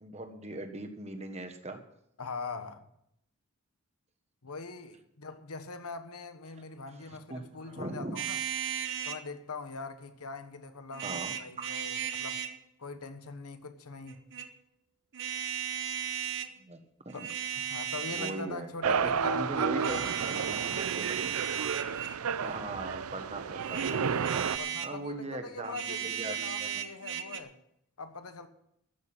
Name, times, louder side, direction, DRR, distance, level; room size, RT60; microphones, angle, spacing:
voice 1, 0.0-1.8 7.0-8.2 11.0-11.7 16.6-16.8 17.0-17.3 18.1-21.3 22.4-24.0 24.3-24.4 24.8-26.8, right 2 dB, 30° right, 1.4 m, -40 dB
voice 2, 2.2-2.8 4.4-8.4 9.0-12.4 12.8-14.2 17.1-20.3 22.4-22.6 24.4-27.5 28.0-28.5, left 4 dB, 85° left, 1.2 m, -42 dB
sound 1, 8.2-9.2 10.9-12.6 14.1-14.5 15.1-16.5 17.1-18.5 19.8-22.2 23.6-25.0 25.6-27.4, right 9 dB, 55° right, 0.9 m, -36 dB
sound 2, 18.8-24.6, right 6 dB, 80° right, 0.5 m, -31 dB
14.0 x 6.7 x 8.7 m
head